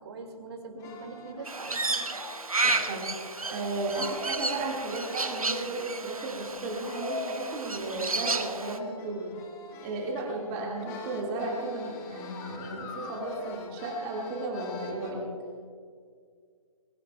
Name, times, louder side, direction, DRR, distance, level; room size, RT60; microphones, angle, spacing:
voice 1, 0.0-2.0, right 3 dB, 45° right, 3 dB, 2.4 m, -42 dB
sound 1, 0.8-15.1, left 3 dB, 15° left, 1.2 m, -44 dB
Crow, 1.5-8.8, right 3 dB, 80° right, 1.1 m, -32 dB
voice 2, 2.6-3.0 3.5-9.3 9.8-15.2, right 2 dB, 20° right, -2 dB, 1.9 m, -34 dB
21.0 x 19.0 x 2.3 m, 2.1 s
figure-of-eight pair, 135°, 18 cm